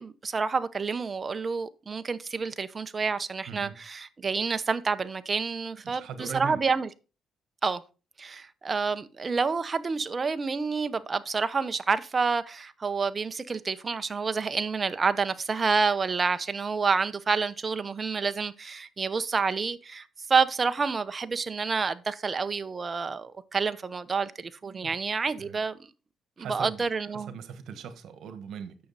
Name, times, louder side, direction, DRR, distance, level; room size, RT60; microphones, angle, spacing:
voice 1, 0.0-6.9 7.6-7.8 8.2-25.8 26.4-27.3, right 5 dB, 35° right, 0.8 m, -28 dB
voice 2, 5.8-6.6 24.6-24.9 25.4-25.6 26.4-26.8 27.1-28.8, right 7 dB, 75° right, 1.4 m, -40 dB
9.0 x 6.6 x 4.1 m
cardioid pair, 90°, 0 cm